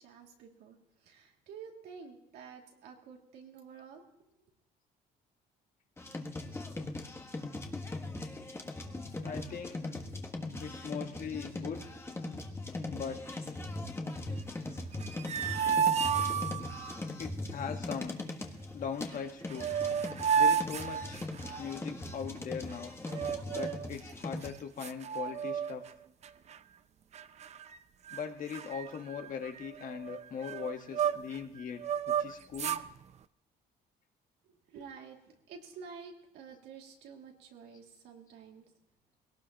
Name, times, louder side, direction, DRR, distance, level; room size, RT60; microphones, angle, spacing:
voice 1, 0.0-4.3 34.4-38.7, right 6 dB, 80° right, 1 dB, 2.6 m, -50 dB
sound 1, 6.0-24.5, left 2 dB, 15° left, 1.5 m, -40 dB
voice 2, 9.2-9.9 10.6-11.8 12.9-13.2 17.2-18.2 18.7-19.7 20.3-21.2 21.6-22.9 23.5-25.9 28.1-32.8, left 7 dB, 50° left, 5 dB, 1.5 m, -40 dB
sound 2, 14.9-17.0 19.1-19.2 19.5-21.7 23.1-23.9 24.4-24.5 24.8-25.9 26.2-26.6 27.1-27.8 28.1-28.2 28.5-31.4 31.8-32.9, right 7 dB, 40° right, 0.5 m, -32 dB
21.0 x 18.0 x 3.0 m, 0.80 s
cardioid pair, 110°, 17 cm